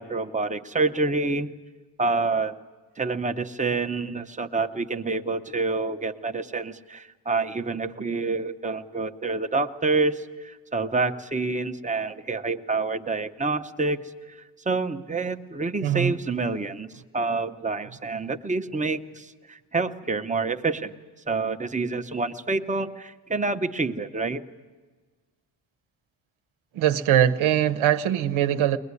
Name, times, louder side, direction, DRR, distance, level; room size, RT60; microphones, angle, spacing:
voice 1, 0.0-1.5 2.0-2.5 3.0-14.0 14.7-16.9 17.1-20.9 21.3-24.4, right 3 dB, 15° right, 0.8 m, -27 dB
voice 2, 15.8-16.1 26.8-28.8, right 11 dB, 75° right, 1.0 m, -21 dB
22.0 x 21.0 x 9.7 m
wide cardioid pair, 165°, 48 cm